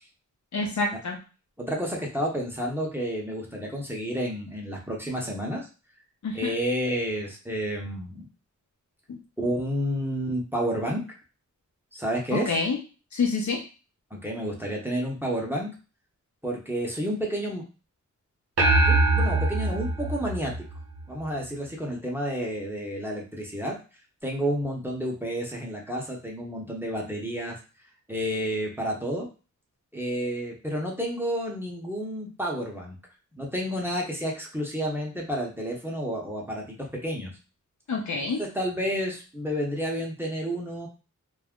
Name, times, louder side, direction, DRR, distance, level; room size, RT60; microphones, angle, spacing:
voice 1, 0.5-1.2 6.2-6.5 9.1-9.2 12.3-12.8 13.1-13.6 37.9-38.4, left 4 dB, 65° left, 1 dB, 0.8 m, -27 dB
voice 2, 1.6-5.7 6.3-8.2 9.4-11.0 11.9-12.5 14.1-15.7 16.4-17.6 18.9-20.5 21.1-23.7 24.2-27.6 28.1-29.3 29.9-33.0 33.3-37.3 38.4-40.9, equal, 5° right, -2 dB, 0.8 m, -30 dB
sound 1, 18.6-21.2, right 2 dB, 50° right, 0.8 m, -23 dB
2.4 x 2.1 x 3.5 m, 0.33 s
wide cardioid pair, 75°, 31 cm